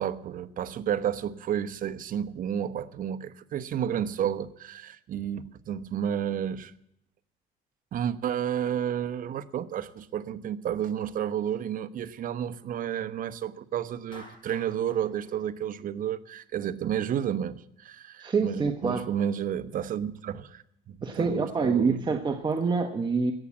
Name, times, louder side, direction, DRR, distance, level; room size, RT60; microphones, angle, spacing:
voice 1, 0.0-6.7 7.9-22.0, right 9 dB, 55° right, 12 dB, 0.9 m, -31 dB
Clapping, 14.1-16.4, left 1 dB, 30° left, 5.3 m, -52 dB
voice 2, 18.2-19.1 21.0-23.3, right 4 dB, 25° right, 5 dB, 1.1 m, -26 dB
17.0 x 7.2 x 8.6 m, 0.79 s
cardioid pair, 110°, 17 cm